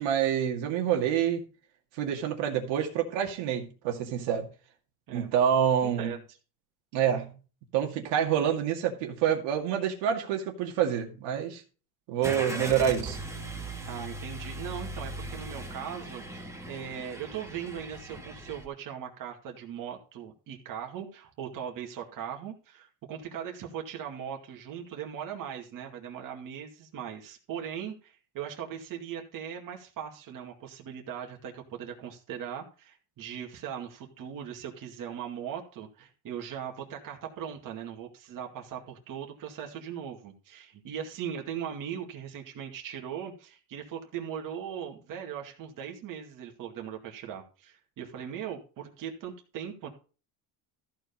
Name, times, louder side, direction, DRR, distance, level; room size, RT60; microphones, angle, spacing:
voice 1, 0.0-1.4 2.0-4.5 5.1-6.1 6.9-7.4 7.7-11.6 12.1-13.2, right 9 dB, 80° right, 2.3 m, -27 dB
voice 2, 5.8-6.2 13.9-49.9, right 8 dB, 45° right, 2.2 m, -39 dB
Car / Engine starting, 12.2-18.6, right 2 dB, 5° right, 1.4 m, -39 dB
14.0 x 4.7 x 5.3 m
cardioid pair, 130°, 44 cm